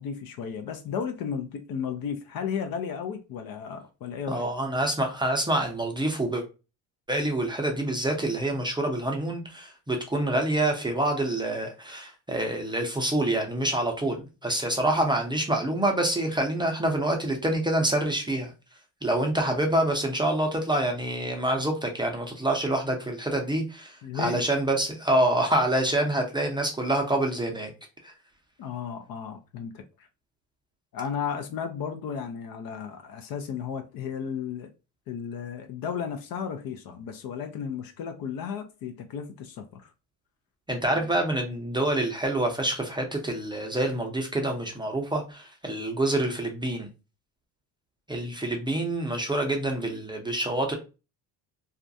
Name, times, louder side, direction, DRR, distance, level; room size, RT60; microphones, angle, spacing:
voice 1, 0.0-4.5 24.0-24.4 28.6-29.8 30.9-34.7 35.1-39.9, left 7 dB, 50° left, 0.5 m, -34 dB
voice 2, 4.3-6.4 7.1-18.5 19.0-27.7 28.0-28.1 40.7-46.9 48.1-50.7, right 1 dB, 10° right, 0.5 m, -26 dB
2.4 x 2.2 x 2.6 m
hypercardioid pair, 75°, 48 cm